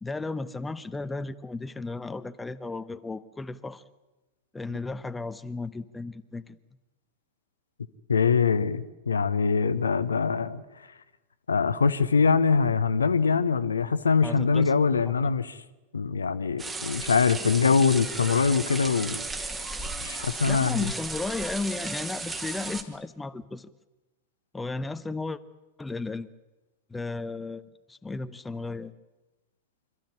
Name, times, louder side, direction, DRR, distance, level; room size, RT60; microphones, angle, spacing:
voice 1, 0.0-3.8 4.5-6.6 14.2-14.7 15.0-15.1 20.5-23.7 24.5-25.4 25.8-26.3 26.9-28.9, left 3 dB, 10° left, 12 dB, 0.8 m, -34 dB
voice 2, 8.1-10.6 11.5-15.6 15.9-19.2 20.0-20.8, left 5 dB, 75° left, 13 dB, 0.9 m, -23 dB
sound 1, 16.6-22.8, right 3 dB, 15° right, 2.0 m, -35 dB
26.0 x 13.5 x 9.9 m, 1.1 s
figure-of-eight pair, 90°, 0 cm